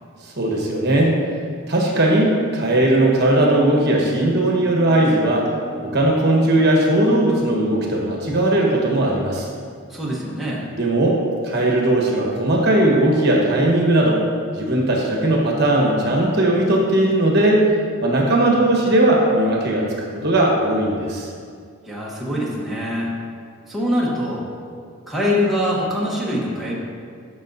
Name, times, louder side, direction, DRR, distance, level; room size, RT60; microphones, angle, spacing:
voice 1, 0.2-1.2 1.7-5.5 5.8-9.5 10.8-14.2 14.5-17.6 18.0-19.9 20.1-21.3, right 1 dB, 50° right, -2 dB, 1.3 m, -18 dB
Piano, 3.0-8.6, equal, 30° left, 2.1 m, -36 dB
voice 2, 9.9-10.7 21.8-23.1 23.7-24.5 25.1-26.8, left 1 dB, ahead, -7 dB, 1.1 m, -23 dB
12.5 x 5.8 x 2.7 m, 2.2 s
head